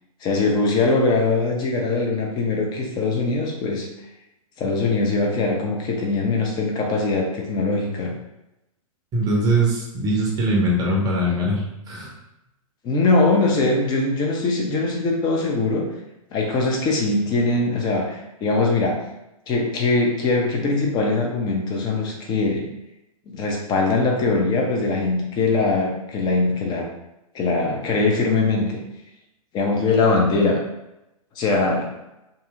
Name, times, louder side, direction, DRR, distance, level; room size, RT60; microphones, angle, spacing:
voice 1, 0.2-3.9 4.6-8.1 12.8-15.9 16.3-19.0 19.5-22.7 23.3-26.9 27.3-28.7 29.5-30.6 31.4-31.9, left 3 dB, 25° left, 0 dB, 0.6 m, -21 dB
voice 2, 9.1-12.1, right 1 dB, 20° right, -3 dB, 0.6 m, -21 dB
2.7 x 2.7 x 2.4 m, 0.92 s
hypercardioid pair, 115°, 19 cm